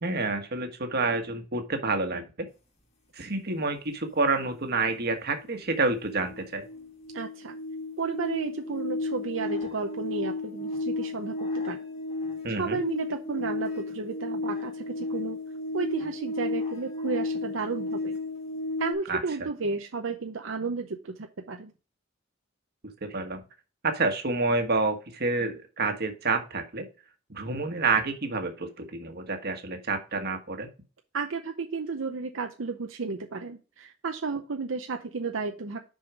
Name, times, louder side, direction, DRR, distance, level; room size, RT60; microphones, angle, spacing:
voice 1, 0.0-2.5 3.1-6.7 12.4-12.8 19.1-19.5 23.0-23.4 23.8-26.8 27.3-30.7, right 3 dB, 55° right, 6 dB, 1.4 m, -28 dB
sound 1, 5.4-5.5 5.7-18.9, left 2 dB, 35° left, 2.0 m, -33 dB
voice 2, 7.1-7.6 8.0-11.8 12.6-15.4 15.7-18.2 18.8-21.7 31.1-35.8, right 4 dB, 80° right, 5 dB, 0.7 m, -33 dB
6.4 x 5.6 x 4.8 m, 0.33 s
head